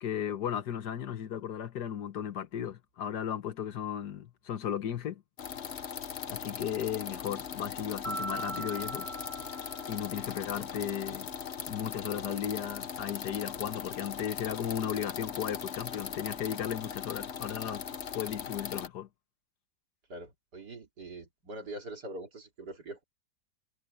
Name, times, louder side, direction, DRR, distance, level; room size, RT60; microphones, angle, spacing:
voice 1, 0.0-5.2 6.3-9.1 9.9-11.3 11.7-17.8 18.1-19.1, left 9 dB, 75° left, 1.7 m, -35 dB
sound 1, 5.4-18.9, left 7 dB, 45° left, 1.1 m, -39 dB
Mallet percussion, 8.0-10.4, right 2 dB, 20° left, 7.2 m, -40 dB
voice 2, 20.1-23.0, right 1 dB, 75° right, 3.9 m, -43 dB
omnidirectional pair, 1.8 m